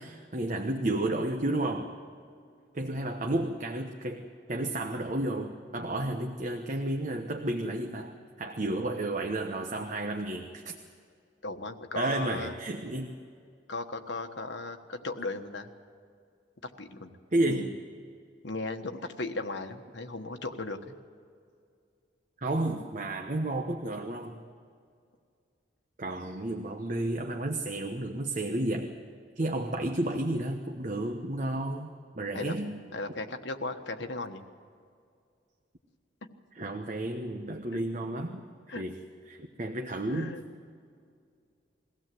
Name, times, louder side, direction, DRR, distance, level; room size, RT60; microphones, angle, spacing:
voice 1, 0.0-1.9 2.7-10.8 12.0-13.1 17.3-17.7 22.4-24.4 26.0-28.9 29.4-32.8 36.5-38.4 38.7-39.0 39.3-40.4, right 1 dB, 45° right, 4 dB, 1.1 m, -32 dB
voice 2, 11.4-12.5 13.7-15.7 16.6-17.1 17.5-17.7 18.4-21.0 32.3-32.5 32.9-34.4 37.7-37.8 38.7-38.8 40.1-40.5, left 2 dB, 80° left, 5 dB, 1.4 m, -36 dB
22.0 x 16.5 x 7.7 m, 2.2 s
head